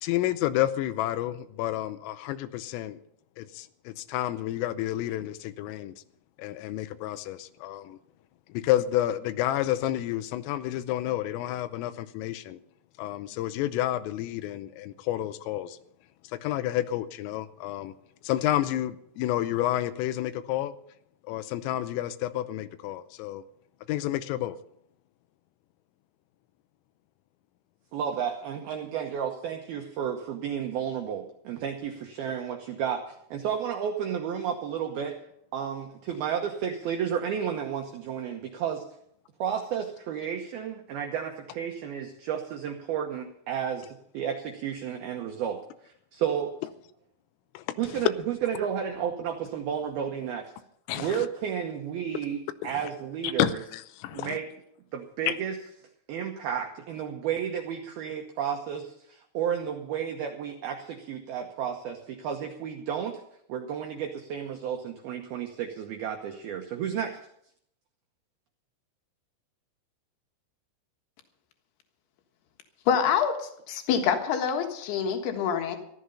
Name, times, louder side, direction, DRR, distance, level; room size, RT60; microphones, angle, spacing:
voice 1, 0.0-3.0 3.4-5.9 6.4-8.0 8.5-12.6 13.0-15.8 16.4-17.9 18.2-20.8 21.3-23.4 23.9-24.6 47.5-47.6 47.9-48.1 50.9-51.3 52.6-52.7 53.2-54.4 55.3-55.4, left 13 dB, 85° left, 3.3 m, -30 dB
voice 2, 27.9-35.2 35.5-38.9 39.4-46.5 47.8-48.1 48.4-50.5 50.9-53.6 54.1-54.5 54.9-55.6 56.1-63.2 63.5-67.3, right 8 dB, 80° right, 2.2 m, -32 dB
voice 3, 72.9-75.8, left 7 dB, 65° left, 3.0 m, -26 dB
14.5 x 13.0 x 5.5 m
omnidirectional pair, 5.8 m